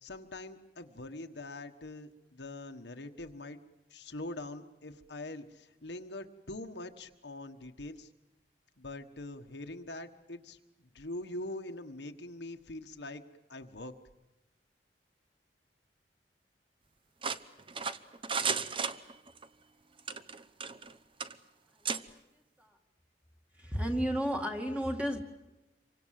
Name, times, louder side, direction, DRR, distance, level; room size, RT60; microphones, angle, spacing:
voice 1, 0.0-3.6 3.9-8.1 8.8-13.2 13.5-13.9, left 2 dB, 75° left, 1.5 m, -43 dB
sound 1, 17.2-19.5 20.0-20.9 21.2-21.3 21.8-22.0, right 5 dB, 30° right, 0.8 m, -34 dB
voice 2, 23.6-25.2, equal, 5° right, 2.2 m, -32 dB
27.0 x 24.5 x 7.7 m
head